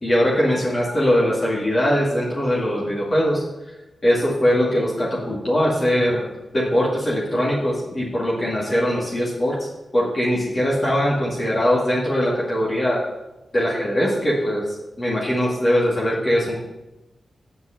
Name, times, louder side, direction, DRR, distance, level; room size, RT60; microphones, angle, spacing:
voice 1, 0.0-3.4 4.0-9.7 9.9-13.0 13.5-14.6 15.0-16.6, equal, 30° left, -5 dB, 2.4 m, -21 dB
8.0 x 5.9 x 7.7 m, 1.0 s
wide cardioid pair, 130°, 0 cm